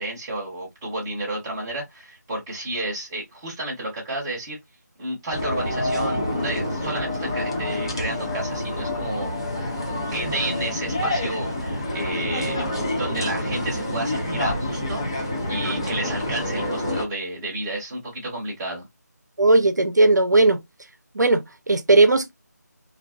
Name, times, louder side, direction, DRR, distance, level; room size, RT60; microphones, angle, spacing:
voice 1, 0.0-4.6 5.0-9.4 10.1-12.6 12.9-15.0 15.5-18.9, right 1 dB, 10° right, 0.8 m, -31 dB
sound 1, 5.3-17.0, left 1 dB, 15° left, 0.3 m, -27 dB
voice 2, 19.4-20.6 21.1-22.3, right 2 dB, 80° right, 0.6 m, -17 dB
2.4 x 2.2 x 2.4 m
figure-of-eight pair, 160°, 10 cm